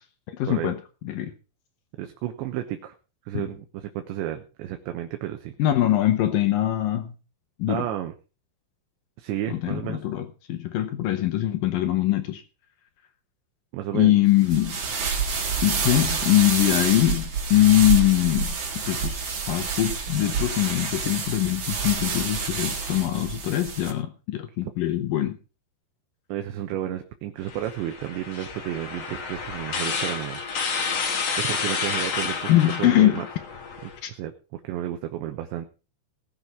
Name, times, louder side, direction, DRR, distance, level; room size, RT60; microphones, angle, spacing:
voice 1, 0.4-0.8 1.0-1.3 3.3-3.5 5.6-7.1 7.6-7.9 9.5-12.4 13.9-14.8 15.6-25.4 32.5-33.2 34.0-34.1, left 14 dB, 90° left, 8 dB, 1.9 m, -22 dB
voice 2, 2.0-2.9 3.3-5.5 7.7-8.1 9.2-10.0 13.7-14.2 26.3-30.4 31.4-32.5 32.8-33.2 33.8-35.7, right 12 dB, 75° right, 6 dB, 3.0 m, -32 dB
sound 1, 14.4-23.9, right 5 dB, 40° right, 4.1 m, -28 dB
sound 2, 27.5-34.0, left 5 dB, 50° left, 1.9 m, -30 dB
19.5 x 6.8 x 5.8 m, 0.34 s
omnidirectional pair, 5.8 m